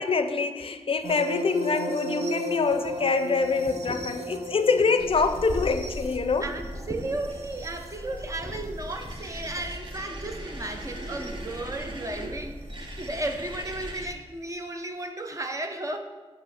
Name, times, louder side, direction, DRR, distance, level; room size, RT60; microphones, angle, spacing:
voice 1, 0.0-6.5, left 4 dB, 55° left, 9 dB, 0.4 m, -25 dB
sound 1, 1.0-9.7 11.0-11.3 13.0-13.1, right 1 dB, 80° right, 0.6 m, -37 dB
sound 2, 2.6-9.1, left 1 dB, 10° left, 0.8 m, -45 dB
sound 3, 5.0-14.1, right 1 dB, 45° right, 1.1 m, -38 dB
voice 2, 6.4-16.0, right 2 dB, 30° right, 5 dB, 0.7 m, -34 dB
8.1 x 3.1 x 6.3 m, 1.3 s
wide cardioid pair, 105°, 11 cm